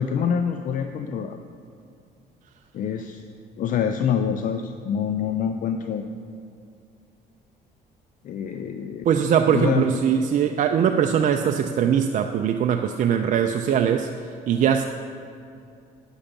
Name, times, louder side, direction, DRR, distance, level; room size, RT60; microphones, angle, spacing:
voice 1, 0.0-1.4 2.7-3.2 3.6-6.1 8.2-9.0 9.5-9.8, left 7 dB, 50° left, 7 dB, 0.5 m, -26 dB
voice 2, 9.0-14.8, right 8 dB, 50° right, 5 dB, 0.5 m, -21 dB
9.8 x 7.1 x 5.2 m, 2.4 s
cardioid pair, 110°, 17 cm